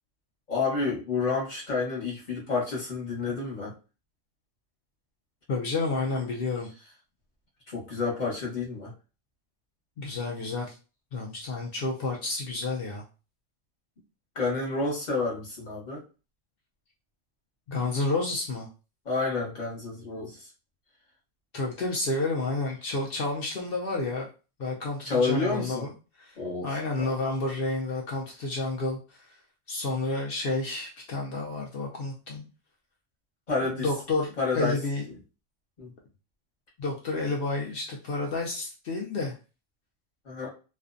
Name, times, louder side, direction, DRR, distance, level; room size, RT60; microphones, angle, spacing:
voice 1, 0.5-3.7 7.7-8.9 14.3-16.0 19.0-20.5 25.0-25.9 26.4-26.7 27.0-27.1 33.5-33.9 34.4-34.8 35.8-35.9 40.2-40.5, left 4 dB, 40° left, -5 dB, 1.1 m, -29 dB
voice 2, 5.5-6.7 10.0-10.8 11.1-13.0 17.7-18.7 21.5-24.3 24.6-25.9 26.2-26.3 26.6-29.3 29.7-32.5 33.6-35.0 36.8-39.3, left 3 dB, 60° left, -1 dB, 0.7 m, -30 dB
2.4 x 2.1 x 2.4 m, 0.33 s
omnidirectional pair, 1.3 m